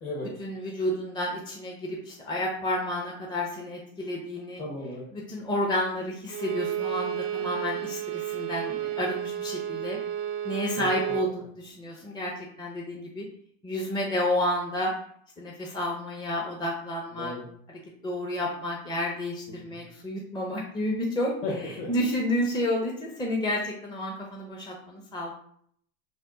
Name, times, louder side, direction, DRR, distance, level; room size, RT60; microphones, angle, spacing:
voice 1, 0.4-4.6 5.1-10.0 10.4-12.3 12.6-13.3 13.6-14.9 15.4-17.3 18.0-21.3 21.9-25.3, left 1 dB, 10° left, -1 dB, 0.6 m, -30 dB
voice 2, 4.6-5.0 10.8-11.3 17.1-17.4 19.5-19.8 21.4-21.9, left 2 dB, 45° left, -6 dB, 1.4 m, -35 dB
Bowed string instrument, 6.3-11.3, right 10 dB, 45° right, 0.4 m, -32 dB
3.5 x 2.2 x 3.8 m, 0.65 s
hypercardioid pair, 95°, 40 cm